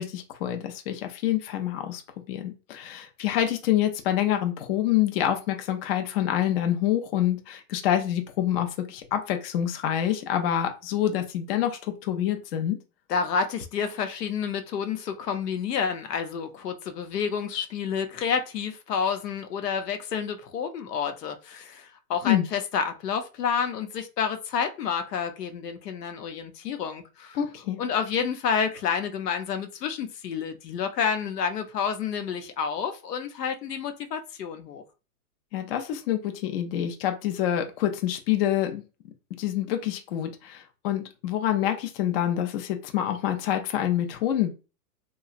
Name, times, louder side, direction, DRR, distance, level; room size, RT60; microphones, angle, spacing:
voice 1, 0.0-2.0 2.3-12.8 22.2-22.5 27.3-27.8 35.5-38.8 39.4-44.5, left 11 dB, 40° left, 0.5 m, -27 dB
voice 2, 13.1-27.4 27.8-34.8, left 6 dB, 85° left, 0.7 m, -29 dB
2.9 x 2.3 x 2.4 m
hypercardioid pair, 130°, 47 cm